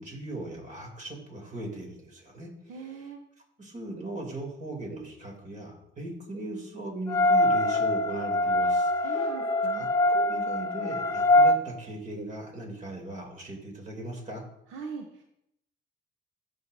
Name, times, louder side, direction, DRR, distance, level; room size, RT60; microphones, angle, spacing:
voice 1, 0.0-3.1 3.6-9.3 9.7-14.4, right 1 dB, 40° right, 1 dB, 2.8 m, -39 dB
voice 2, 2.7-3.2 9.0-9.8 14.7-15.2, right 5 dB, 85° right, 4 dB, 0.8 m, -40 dB
sound 1, 7.1-11.6, left 1 dB, 15° left, 1.0 m, -23 dB
14.5 x 5.7 x 2.6 m, 0.77 s
cardioid pair, 90°, 20 cm